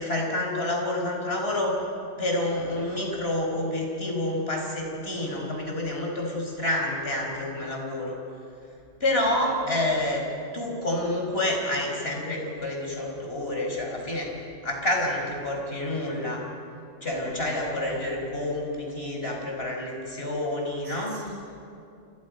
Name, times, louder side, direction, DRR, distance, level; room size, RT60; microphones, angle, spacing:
voice 1, 0.0-1.7 2.2-8.2 9.0-10.2 10.5-14.3 14.6-16.4 17.0-21.2, left 1 dB, 60° left, 0 dB, 5.4 m, -28 dB
voice 2, 17.2-17.9 20.8-21.3, right 1 dB, 90° right, -3 dB, 8.0 m, -41 dB
29.0 x 28.5 x 5.3 m, 2.5 s
omnidirectional pair, 1.2 m